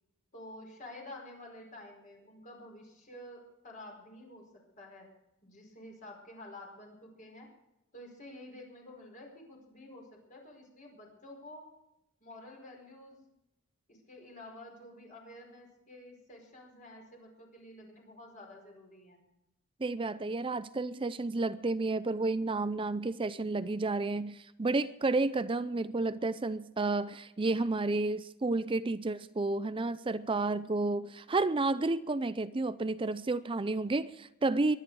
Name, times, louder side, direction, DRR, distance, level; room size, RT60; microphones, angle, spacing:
voice 1, 0.3-4.4 4.8-5.1 5.4-7.5 7.9-11.7 12.2-13.2 13.9-19.2, left 1 dB, 40° left, 4.9 m, -50 dB
voice 2, 19.8-34.8, right 3 dB, 25° right, 0.5 m, -31 dB
22.5 x 11.0 x 4.8 m
head